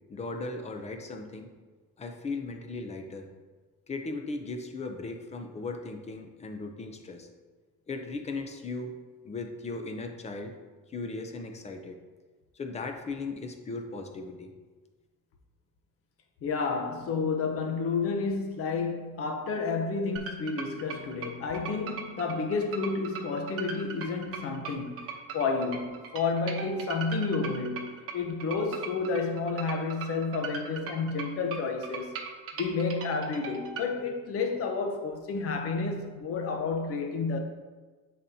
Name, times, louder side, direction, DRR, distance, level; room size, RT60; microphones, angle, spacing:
voice 1, 0.1-1.5 2.0-3.3 3.9-7.3 7.9-9.0 9.2-10.6 10.9-12.0 12.5-14.5, left 3 dB, 20° left, 0.6 m, -37 dB
voice 2, 16.4-25.1 25.3-32.2 32.6-37.4, left 4 dB, 50° left, 0.8 m, -30 dB
sound 1, 20.2-33.9, right 6 dB, 50° right, 0.9 m, -39 dB
10.5 x 4.3 x 2.7 m
cardioid pair, 165°, 30 cm